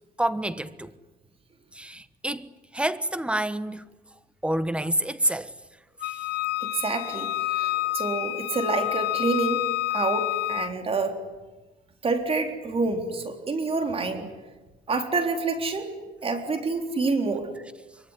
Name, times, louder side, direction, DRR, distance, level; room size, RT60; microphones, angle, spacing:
voice 1, 0.2-0.9 1.7-3.8 4.4-5.5 6.0-6.2 7.8-7.9, right 1 dB, 5° right, 1.3 m, -28 dB
Wind instrument woodwind instrument, 6.0-10.7, left 16 dB, 75° left, 1.1 m, -28 dB
voice 2, 6.6-9.6 9.9-11.2 12.0-14.3 14.9-15.9 16.2-17.5, right 3 dB, 35° right, 3.9 m, -27 dB
25.0 x 24.0 x 9.8 m
cardioid pair, 110°, 17 cm